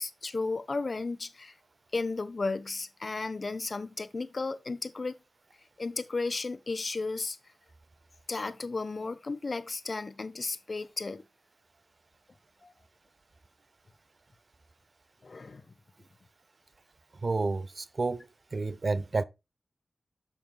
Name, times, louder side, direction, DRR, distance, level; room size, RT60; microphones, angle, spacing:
voice 1, 0.0-1.5 1.9-5.2 5.8-7.4 8.3-11.2 12.6-12.7 15.2-15.6, left 3 dB, 55° left, 1.1 m, -34 dB
voice 2, 17.2-18.2 18.5-19.2, right 3 dB, 50° right, 0.6 m, -30 dB
10.5 x 7.2 x 2.4 m
cardioid pair, 55°, 0 cm